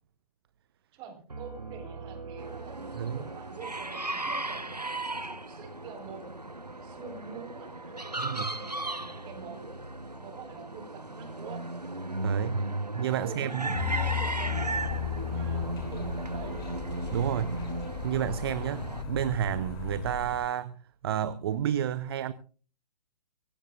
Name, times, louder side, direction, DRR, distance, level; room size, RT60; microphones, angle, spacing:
voice 1, 0.9-6.3 6.8-9.7 10.2-11.7 12.6-16.7, right 5 dB, 25° right, 4.1 m, -46 dB
Piano, 1.3-6.8, right 4 dB, 75° right, 2.1 m, -46 dB
sound 1, 2.4-19.0, right 2 dB, 90° right, 1.3 m, -36 dB
voice 2, 3.0-3.3 8.2-8.5 12.2-12.6 13.0-13.7 17.1-17.6 18.0-20.7 21.0-22.3, right 10 dB, 40° right, 0.8 m, -30 dB
sound 2, 13.7-20.4, left 7 dB, 35° left, 6.3 m, -35 dB
24.5 x 16.0 x 2.4 m
figure-of-eight pair, 125°, 20 cm